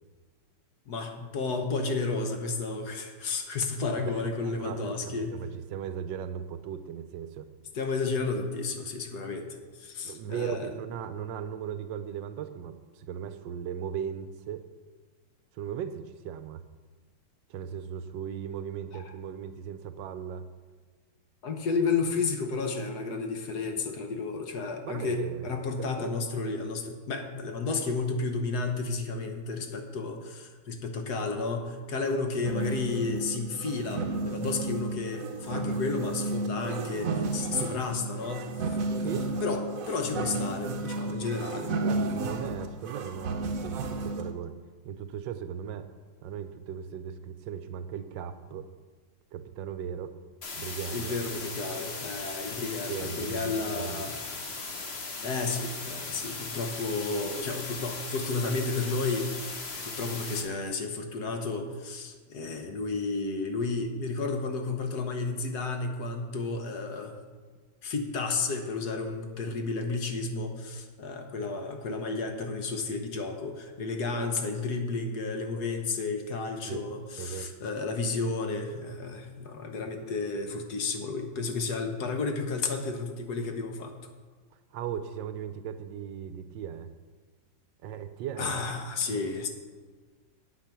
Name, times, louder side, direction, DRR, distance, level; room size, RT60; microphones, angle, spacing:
voice 1, 0.9-5.4 7.7-9.5 9.8-10.7 18.9-19.1 21.4-41.8 50.9-54.2 55.2-67.2 67.8-84.0 88.4-89.5, left 3 dB, 60° left, 5 dB, 1.4 m, -32 dB
voice 2, 4.0-7.5 10.0-14.7 15.5-16.6 17.5-20.5 24.8-26.1 39.0-39.3 41.8-44.6 44.8-45.9 46.2-48.7 49.3-50.1 50.6-51.2 52.9-54.0 76.6-76.8 77.2-77.5 84.7-86.9 87.8-88.6 89.1-89.3, right 8 dB, 80° right, 10 dB, 1.3 m, -37 dB
sound 1, 32.4-44.3, right 2 dB, 60° right, 1.0 m, -33 dB
sound 2, 50.4-60.4, left 3 dB, 40° left, 1.2 m, -38 dB
8.5 x 8.3 x 6.0 m, 1.4 s
omnidirectional pair, 2.1 m